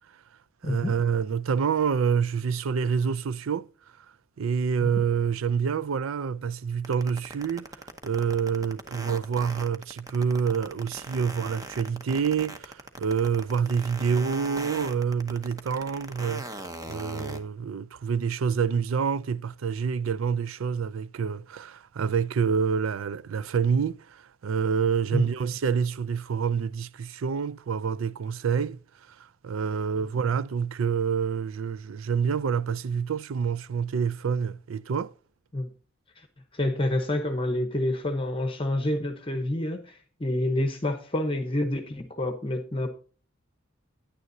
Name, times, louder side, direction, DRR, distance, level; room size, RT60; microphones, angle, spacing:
voice 1, 0.6-3.7 4.4-7.7 8.0-16.5 16.9-28.8 29.1-29.2 29.4-35.1, right 6 dB, 80° right, 0.4 m, -27 dB
sound 1, 6.8-17.4, right 2 dB, 15° right, 0.8 m, -39 dB
voice 2, 36.5-39.9 40.2-42.9, left 1 dB, 25° left, 0.9 m, -28 dB
9.9 x 9.5 x 2.7 m
head